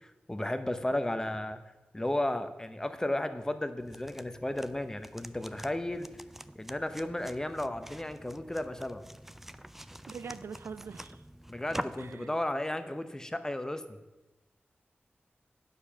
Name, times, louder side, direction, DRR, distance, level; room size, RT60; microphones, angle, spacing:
voice 1, 0.0-1.6 1.9-6.1 6.5-9.0 11.5-14.0, left 1 dB, 15° left, 9 dB, 0.8 m, -34 dB
sound 1, 3.8-12.1, equal, 5° right, 0.4 m, -45 dB
voice 2, 10.1-11.2 12.0-12.3, right 6 dB, 80° right, 13 dB, 0.4 m, -43 dB
9.5 x 6.8 x 5.8 m, 1.1 s
wide cardioid pair, 80°, 4 cm